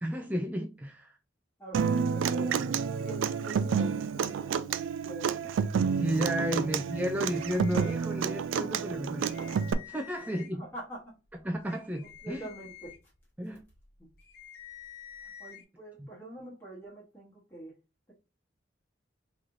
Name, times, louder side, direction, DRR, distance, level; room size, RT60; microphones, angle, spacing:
voice 1, 0.0-1.2 5.8-9.5 9.9-10.6 11.4-12.4 13.4-13.6 16.0-16.1, equal, 10° right, 0.4 m, -33 dB
voice 2, 1.6-2.6 3.0-5.6 6.5-6.8 10.6-11.2 12.2-13.1 15.1-17.8, right 1 dB, 10° left, 1.0 m, -45 dB
Human voice / Acoustic guitar, 1.7-9.7, right 6 dB, 90° right, 0.3 m, -30 dB
sound 1, 6.9-8.4 8.8-8.9 9.2-10.7 11.3-15.6, left 9 dB, 55° left, 0.7 m, -50 dB
4.0 x 3.1 x 2.5 m
head